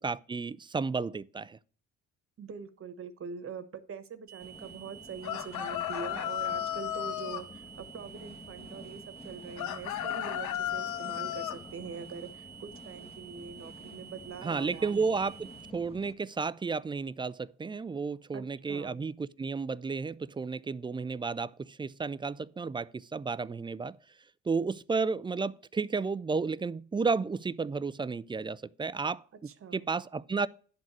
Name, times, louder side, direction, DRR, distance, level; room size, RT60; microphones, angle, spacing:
voice 1, 0.0-1.6 14.4-24.0 24.5-29.2 29.7-30.5, right 4 dB, 15° right, 0.3 m, -32 dB
voice 2, 2.4-15.2 18.3-19.0 29.3-29.9, right 6 dB, 45° right, 1.1 m, -44 dB
sound 1, 4.3-15.7, right 11 dB, 65° right, 0.5 m, -51 dB
sound 2, 4.4-16.1, left 2 dB, 20° left, 1.1 m, -50 dB
sound 3, 5.2-7.5 9.6-11.6, left 12 dB, 80° left, 0.6 m, -34 dB
10.5 x 4.0 x 7.5 m
cardioid pair, 90°, 30 cm